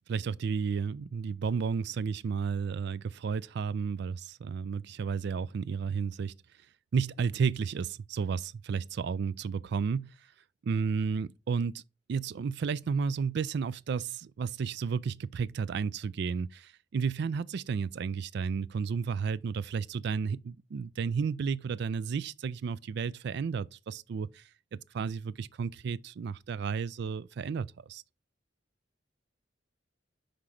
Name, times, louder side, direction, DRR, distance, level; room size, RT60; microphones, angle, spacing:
voice 1, 0.1-6.3 6.9-10.1 10.6-11.8 12.1-24.4 24.7-28.0, right 5 dB, 60° right, 0.3 m, -32 dB
5.1 x 4.9 x 5.7 m
head